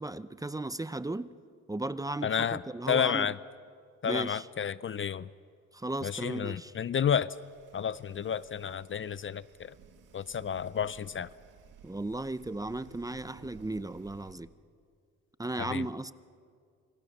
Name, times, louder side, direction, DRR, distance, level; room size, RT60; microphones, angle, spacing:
voice 1, 0.0-1.3 1.7-3.3 4.0-4.4 5.7-6.7 11.8-14.5 15.4-16.1, right 2 dB, 10° right, 14 dB, 0.6 m, -35 dB
voice 2, 2.2-2.6 2.9-3.4 4.0-5.3 6.0-7.4 7.7-9.7 10.1-11.3 15.6-15.9, left 8 dB, 40° left, 17 dB, 0.5 m, -31 dB
sound 1, 7.3-14.3, right 7 dB, 75° right, 2.1 m, -56 dB
27.0 x 25.5 x 6.7 m, 2.3 s
cardioid pair, 105°, 32 cm